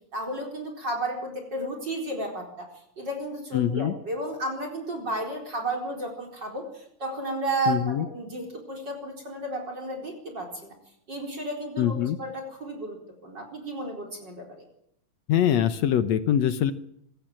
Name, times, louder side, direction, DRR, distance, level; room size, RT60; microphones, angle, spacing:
voice 1, 0.1-2.7 3.0-10.7 11.1-13.0 13.2-14.6, right 1 dB, 30° right, 4 dB, 4.7 m, -33 dB
voice 2, 3.5-3.9 7.7-8.1 11.8-12.2 15.3-16.7, left 10 dB, 65° left, 11 dB, 1.8 m, -23 dB
25.5 x 15.5 x 9.0 m, 0.74 s
omnidirectional pair, 4.1 m